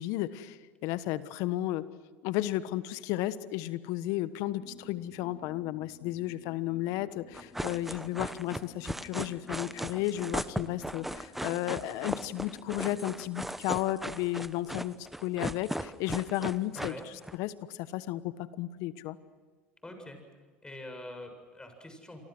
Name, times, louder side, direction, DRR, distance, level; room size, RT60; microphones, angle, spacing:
voice 1, 0.0-1.8 2.2-14.9 15.2-16.9 17.3-19.2, left 15 dB, 65° left, 14 dB, 1.3 m, -33 dB
sound 1, 4.6-13.3, left 5 dB, 35° left, 3.9 m, -55 dB
sound 2, 7.3-17.4, right 1 dB, 5° right, 1.0 m, -37 dB
voice 2, 16.7-17.1 19.8-20.2 20.6-22.2, left 1 dB, 15° left, 6 dB, 7.4 m, -44 dB
29.5 x 24.5 x 6.2 m, 1.5 s
hypercardioid pair, 80°, 6 cm